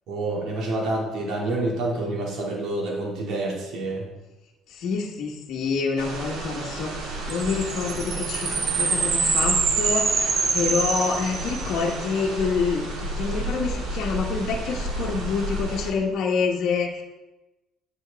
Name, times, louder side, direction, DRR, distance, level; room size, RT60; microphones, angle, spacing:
voice 1, 0.1-4.1, right 2 dB, 65° right, -2 dB, 2.1 m, -28 dB
voice 2, 4.7-6.9 7.3-17.0, left 5 dB, 65° left, -1 dB, 1.0 m, -27 dB
sound 1, 6.0-15.9, right 1 dB, 85° right, 1.8 m, -32 dB
sound 2, 7.3-11.9, right 5 dB, 45° right, 0.8 m, -25 dB
7.7 x 7.0 x 3.4 m, 1.1 s
cardioid pair, 120°, 0 cm